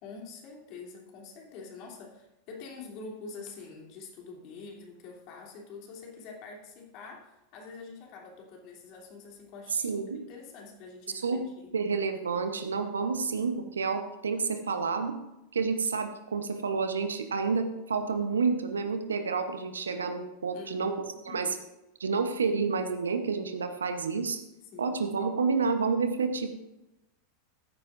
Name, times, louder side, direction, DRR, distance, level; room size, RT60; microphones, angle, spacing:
voice 1, 0.0-11.4 20.5-21.0 21.3-21.4 24.7-25.1, left 4 dB, 50° left, -1 dB, 3.1 m, -46 dB
voice 2, 9.8-10.2 11.2-11.4 11.7-15.2 15.5-21.0 21.2-21.5 22.0-24.4 24.8-26.5, right 5 dB, 80° right, 8 dB, 1.0 m, -29 dB
15.0 x 9.6 x 2.6 m, 0.94 s
hypercardioid pair, 90°, 0 cm